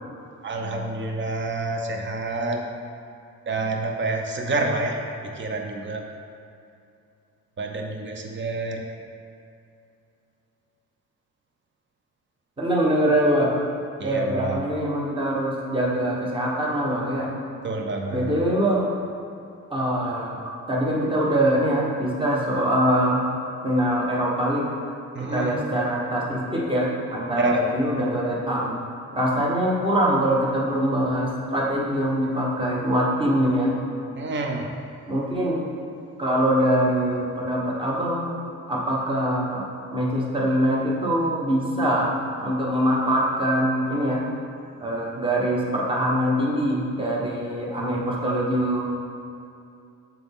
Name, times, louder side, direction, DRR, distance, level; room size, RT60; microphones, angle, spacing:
voice 1, 0.4-2.6 3.5-5.0 5.4-6.0 7.6-8.8 14.0-14.6 17.6-18.4 25.1-25.5 27.4-27.6 34.2-34.7, right 2 dB, 40° right, 2 dB, 0.8 m, -28 dB
voice 2, 12.6-13.6 14.0-17.3 18.1-18.9 19.7-20.4 20.7-23.2 23.6-24.7 25.2-28.7 29.1-33.7 35.1-35.6 36.2-38.4 38.7-42.1 42.4-44.2 44.8-48.9, equal, 15° right, -4 dB, 1.2 m, -23 dB
7.0 x 3.8 x 3.6 m, 2.6 s
cardioid pair, 90°, 30 cm